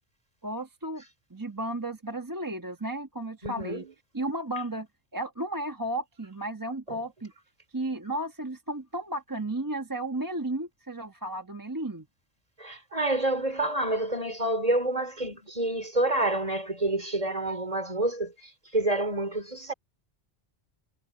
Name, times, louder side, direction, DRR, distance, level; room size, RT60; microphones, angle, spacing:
voice 1, 0.4-1.0 1.3-3.8 4.1-4.9 5.1-7.3 7.7-12.1, right 1 dB, 20° right, 1.2 m, -33 dB
voice 2, 3.4-3.9 6.9-7.0 12.6-19.7, right 1 dB, 35° right, 4.2 m, -28 dB
omnidirectional pair, 1.1 m